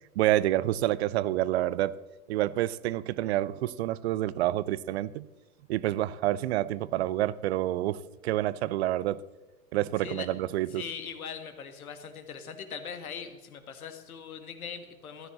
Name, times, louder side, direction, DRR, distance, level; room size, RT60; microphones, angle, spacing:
voice 1, 0.2-2.0 2.3-5.3 5.7-9.2 9.7-10.8, right 14 dB, 45° right, 0.6 m, -28 dB
voice 2, 10.7-15.3, left 6 dB, 70° left, 1.8 m, -40 dB
14.0 x 12.5 x 3.7 m
figure-of-eight pair, 100°, 44 cm